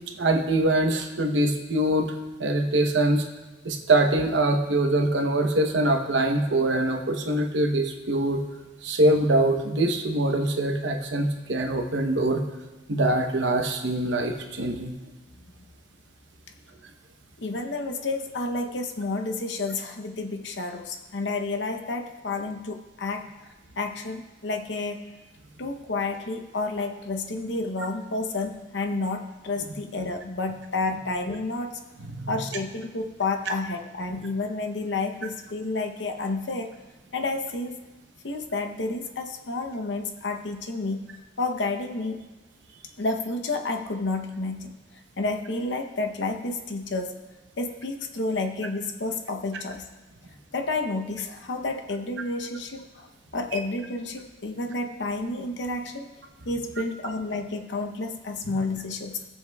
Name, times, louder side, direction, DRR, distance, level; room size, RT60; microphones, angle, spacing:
voice 1, 0.2-2.1 2.4-3.3 3.6-8.4 8.8-12.4 12.9-14.9 32.0-32.4 58.4-58.5, right 1 dB, 75° right, 4 dB, 0.9 m, -23 dB
voice 2, 17.4-25.0 25.6-31.8 32.3-36.7 37.1-37.8 38.2-41.1 41.4-42.3 43.0-44.7 45.2-47.2 47.6-49.9 50.5-53.1 53.3-56.1 56.4-59.2, left 3 dB, 70° left, 5 dB, 0.8 m, -30 dB
18.0 x 7.3 x 2.3 m, 1.2 s
head